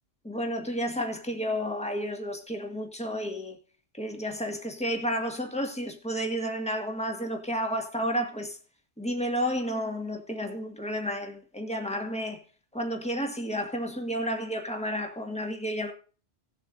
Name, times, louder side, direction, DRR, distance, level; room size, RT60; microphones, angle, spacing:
voice 1, 0.2-3.6 3.9-8.6 9.0-12.4 12.7-15.9, equal, 5° left, 1.7 m, -31 dB
18.0 x 7.7 x 2.6 m
omnidirectional pair, 1.2 m